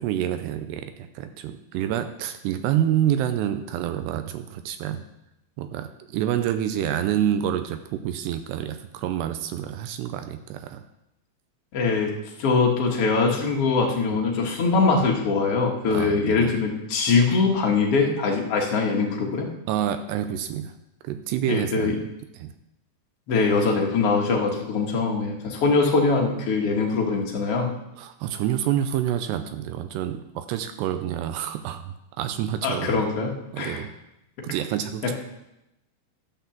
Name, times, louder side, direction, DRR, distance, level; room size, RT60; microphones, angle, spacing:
voice 1, 0.0-5.0 5.6-10.8 14.1-14.2 15.9-16.5 19.7-20.7 21.0-22.0 22.3-22.5 28.0-31.8 32.2-33.0 33.5-33.9 34.4-35.1, right 10 dB, 80° right, 9 dB, 2.6 m, -27 dB
voice 2, 11.7-12.1 12.4-19.5 21.4-21.9 23.3-27.7 32.6-33.8 35.0-35.1, left 4 dB, 60° left, 0 dB, 1.5 m, -22 dB
12.5 x 5.9 x 7.1 m, 0.88 s
omnidirectional pair, 5.1 m